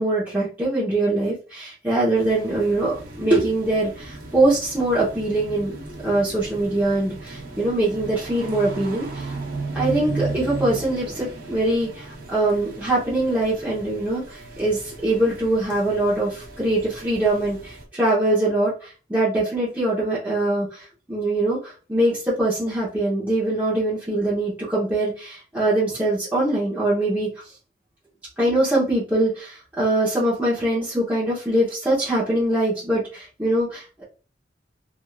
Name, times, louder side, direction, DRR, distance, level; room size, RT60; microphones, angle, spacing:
voice 1, 0.0-9.3 9.7-27.3 28.4-34.0, right 1 dB, 10° right, -10 dB, 0.8 m, -23 dB
sound 1, 2.1-17.8, right 3 dB, 55° right, 0.9 m, -36 dB
3.2 x 2.6 x 2.3 m, 0.36 s
head